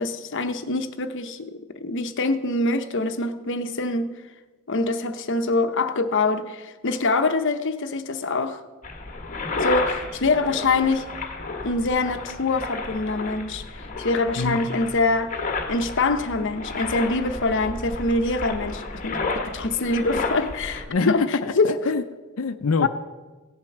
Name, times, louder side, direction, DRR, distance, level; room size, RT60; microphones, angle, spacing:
voice 1, 0.0-4.1 4.7-8.6 9.6-11.1 11.6-15.4 15.7-21.2 21.6-21.7 22.8-22.9, left 3 dB, 60° left, 0.9 m, -24 dB
sound 1, 8.8-20.8, left 3 dB, 40° left, 1.5 m, -32 dB
voice 2, 14.4-14.7 20.9-22.0 22.4-22.9, left 4 dB, 80° left, 0.6 m, -25 dB
17.0 x 7.5 x 6.0 m
head